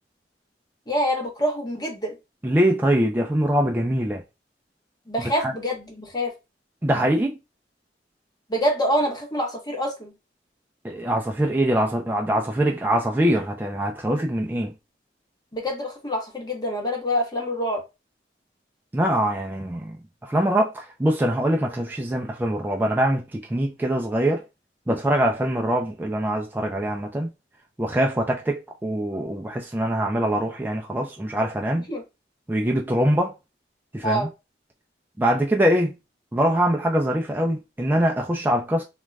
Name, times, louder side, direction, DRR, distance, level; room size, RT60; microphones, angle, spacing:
voice 1, 0.9-2.1 5.1-6.3 8.5-10.1 15.5-17.8 31.9-32.0 34.0-34.3, equal, 25° left, 0.8 m, -26 dB
voice 2, 2.4-4.2 5.2-5.5 6.8-7.4 10.8-14.7 18.9-20.0 20.2-24.4 24.9-27.3 27.8-31.9 32.5-33.3 33.9-34.3 35.2-36.0 36.3-38.8, right 1 dB, 10° right, 0.3 m, -23 dB
2.3 x 2.1 x 3.2 m
head